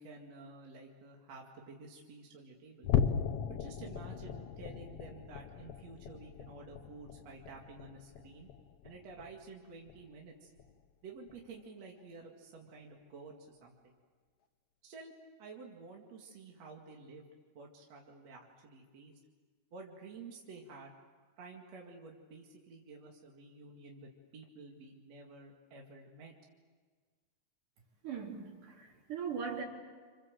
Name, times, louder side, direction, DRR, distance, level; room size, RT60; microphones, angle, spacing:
voice 1, 0.0-2.9 3.5-8.5 8.8-10.5 11.0-13.8 14.8-15.1 15.4-17.3 17.5-19.2 19.7-20.9 21.4-26.3, right 3 dB, 55° right, 0 dB, 3.2 m, -51 dB
sound 1, 2.8-9.5 9.9-10.2 10.6-10.7 11.3-11.4, left 8 dB, 65° left, 1.5 m, -37 dB
voice 2, 28.0-29.6, right 6 dB, 75° right, -1 dB, 5.3 m, -40 dB
29.0 x 27.0 x 7.7 m, 1.5 s
omnidirectional pair, 3.7 m